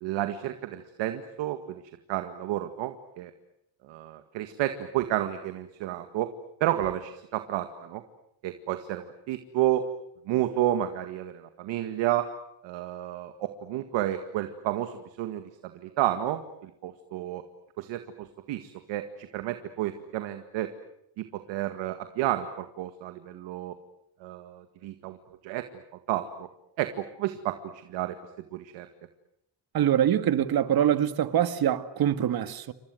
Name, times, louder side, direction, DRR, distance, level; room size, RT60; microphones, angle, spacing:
voice 1, 0.0-1.8 2.1-3.3 3.8-6.3 6.6-8.0 8.4-9.9 10.3-12.3 12.6-17.4 17.8-20.7 21.2-23.8 24.2-25.2 25.4-25.8 26.1-26.5 26.8-28.2 28.5-28.9, right 13 dB, 85° right, 1.9 m, -31 dB
voice 2, 29.7-32.7, right 10 dB, 55° right, 1.9 m, -24 dB
29.0 x 25.5 x 7.8 m
cardioid pair, 105°, 43 cm